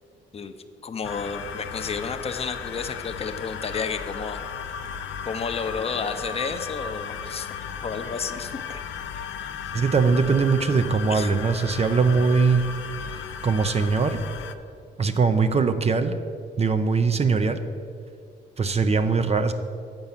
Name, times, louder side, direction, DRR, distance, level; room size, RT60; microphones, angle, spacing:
voice 1, 0.8-4.4 5.3-7.5 7.8-8.8 11.1-11.3, left 5 dB, 30° left, 7 dB, 0.7 m, -31 dB
sound 1, 1.0-14.6, left 7 dB, 75° left, 0.6 m, -35 dB
voice 2, 9.7-12.6 13.1-14.2 15.0-16.2 16.6-17.6 18.6-19.5, right 4 dB, 30° right, 9 dB, 0.6 m, -21 dB
8.1 x 5.3 x 7.2 m, 2.2 s
cardioid pair, 90°, 20 cm